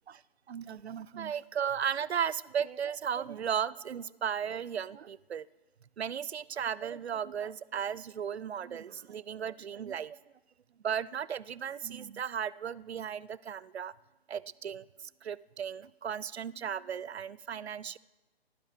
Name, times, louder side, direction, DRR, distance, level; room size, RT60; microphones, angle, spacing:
voice 1, 0.5-5.5 6.0-10.2 10.8-13.9 14.3-14.8 15.2-18.0, right 8 dB, 80° right, 22 dB, 0.5 m, -35 dB
15.5 x 11.5 x 5.1 m, 1.1 s
figure-of-eight pair, 140°, 32 cm